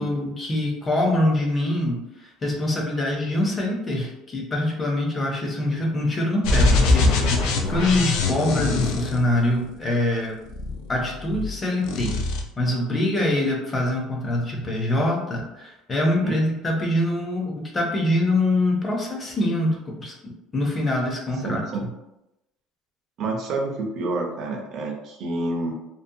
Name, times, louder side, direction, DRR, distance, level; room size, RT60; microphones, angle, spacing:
voice 1, 0.0-7.4 7.7-10.3 10.9-12.2 12.6-21.6, left 1 dB, 20° left, 0 dB, 0.5 m, -24 dB
sound 1, 6.4-9.7 10.5-11.5 11.8-12.4, left 3 dB, 70° left, 0.4 m, -22 dB
voice 2, 21.4-21.9 23.2-25.7, right 2 dB, 45° right, 1 dB, 0.5 m, -28 dB
2.6 x 2.1 x 2.6 m, 0.91 s
cardioid pair, 160°, 0 cm